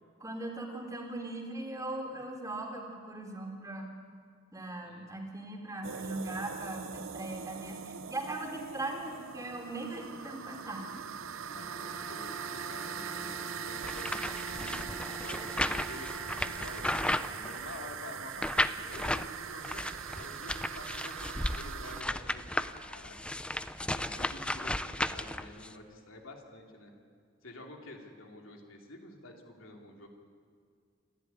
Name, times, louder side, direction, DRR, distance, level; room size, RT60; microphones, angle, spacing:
voice 1, 0.2-3.9 4.5-10.9, right 2 dB, 15° right, 2 dB, 3.2 m, -39 dB
sound 1, 5.8-22.0, right 7 dB, 80° right, 0.6 m, -41 dB
voice 2, 11.4-23.6 23.9-26.9 27.4-30.1, left 1 dB, 90° left, 2 dB, 3.0 m, -49 dB
Bowed string instrument, 11.4-17.6, right 1 dB, 25° left, 4.5 m, -46 dB
sound 2, 13.8-17.9 18.4-19.3 19.6-25.7, left 1 dB, 5° left, 0.5 m, -34 dB
27.5 x 11.5 x 9.6 m, 2.2 s
head